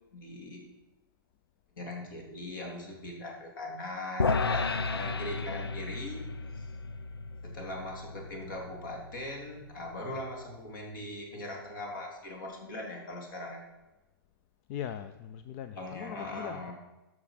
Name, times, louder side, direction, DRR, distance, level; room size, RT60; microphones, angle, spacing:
voice 1, 0.1-0.6 1.8-6.3 6.6-6.7 7.4-13.6 15.8-16.7, left 1 dB, 60° left, 0 dB, 3.7 m, -40 dB
sound 1, 4.2-10.6, left 4 dB, 90° left, 0.6 m, -34 dB
voice 2, 14.7-16.7, left 10 dB, 40° left, 10 dB, 0.6 m, -40 dB
13.5 x 6.2 x 5.9 m, 1.1 s
hypercardioid pair, 120°, 12 cm